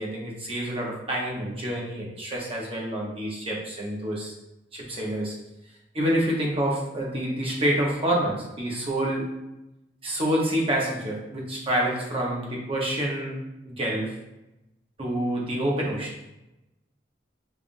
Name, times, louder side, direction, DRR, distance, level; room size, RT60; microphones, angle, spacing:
voice 1, 0.0-4.3 4.7-5.4 5.9-9.3 10.0-14.1 15.0-16.3, right 1 dB, 30° right, -3 dB, 0.8 m, -27 dB
5.4 x 2.5 x 2.5 m, 0.95 s
head